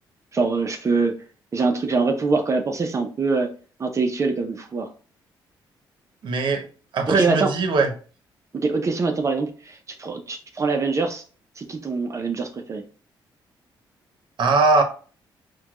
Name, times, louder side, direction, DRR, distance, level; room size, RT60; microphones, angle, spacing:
voice 1, 0.3-1.2 1.5-3.5 3.8-4.9 7.1-7.5 8.5-11.2 11.6-12.8, right 4 dB, 35° right, 4 dB, 0.5 m, -24 dB
voice 2, 6.2-6.6 6.9-7.9 14.4-14.8, right 3 dB, 65° right, 4 dB, 0.8 m, -20 dB
4.4 x 2.2 x 2.4 m, 0.39 s
cardioid pair, 80°, 9 cm